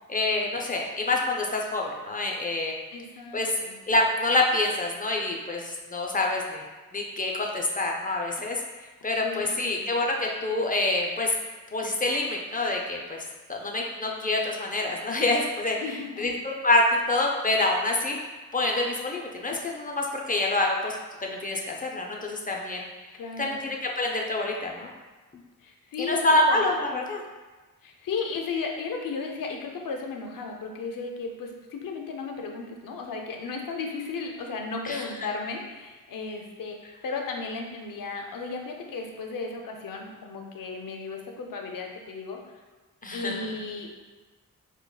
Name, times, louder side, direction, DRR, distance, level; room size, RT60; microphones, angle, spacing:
voice 1, 0.1-2.7 3.3-3.5 3.9-6.6 6.9-8.6 9.0-11.3 11.7-13.2 13.5-15.8 16.2-18.2 18.5-22.8 23.4-24.9 26.0-27.2 34.8-35.1 43.0-43.4, left 2 dB, 25° left, 0 dB, 0.5 m, -26 dB
voice 2, 2.9-3.8 9.1-9.8 15.8-16.3 23.2-23.6 25.6-26.6 27.8-42.4 43.1-43.9, left 4 dB, 75° left, 2 dB, 0.6 m, -35 dB
4.5 x 2.2 x 2.2 m, 1.3 s
cardioid pair, 75°, 33 cm